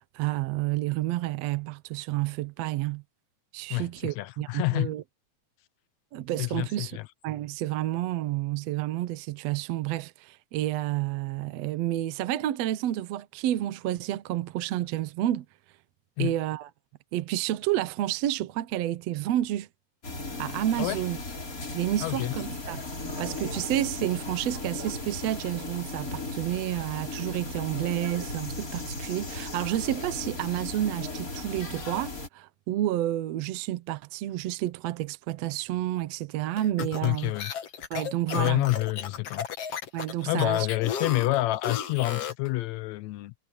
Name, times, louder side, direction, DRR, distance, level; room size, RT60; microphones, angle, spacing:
voice 1, 0.1-3.0 3.5-5.0 6.1-7.0 7.2-15.5 16.2-16.7 17.1-19.7 20.4-21.2 21.7-22.8 23.2-37.3 37.9-38.7 39.9-40.7, right 14 dB, 70° right, 1.8 m, -30 dB
voice 2, 3.7-4.9 6.4-7.1 16.2-16.3 20.8-21.0 22.0-22.3 37.0-37.5 38.3-39.5 40.3-43.3, left 19 dB, 80° left, 1.8 m, -28 dB
sound 1, 20.0-32.3, left 2 dB, 25° left, 4.7 m, -36 dB
sound 2, 36.6-42.5, left 8 dB, 55° left, 2.4 m, -34 dB
omnidirectional pair, 3.5 m